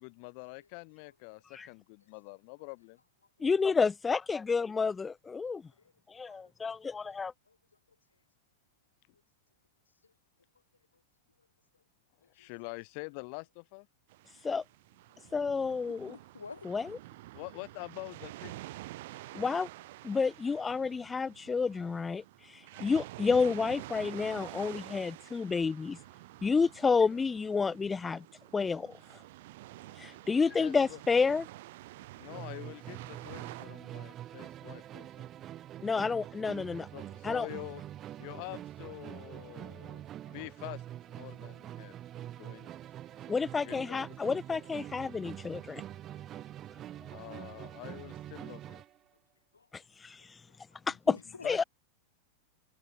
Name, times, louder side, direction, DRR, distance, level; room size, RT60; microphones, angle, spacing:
voice 1, 0.0-3.0 12.3-13.9 17.3-18.8 23.7-23.9 27.1-27.2 30.4-31.0 32.2-35.3 36.9-37.9 38.2-40.8 41.1-42.0 42.4-42.7 43.5-44.1 47.1-48.8 51.4-51.6, left 39 dB, 45° left, 1.9 m, -46 dB
voice 2, 3.4-5.6 6.1-7.3 14.4-14.6 15.3-16.2 16.6-16.9 19.3-19.7 20.0-22.2 22.8-26.0 26.4-28.2 28.5-28.9 30.0-31.4 35.8-36.9 37.2-37.5 43.3-45.8 50.0-50.2 50.9-51.0 51.4-51.6, left 5 dB, 15° left, 0.6 m, -30 dB
voice 3, 7.1-7.6 12.4-12.5 15.6-16.7 28.1-28.2 30.0-30.1 42.6-42.8 46.3-46.4 49.5-49.7 51.1-51.7, left 5 dB, 75° left, 2.6 m, -49 dB
sound 1, 14.1-33.7, right 18 dB, 50° right, 7.1 m, -48 dB
Musical instrument, 32.3-49.0, right 12 dB, 30° right, 1.4 m, -45 dB
figure-of-eight pair, 90°, 0 cm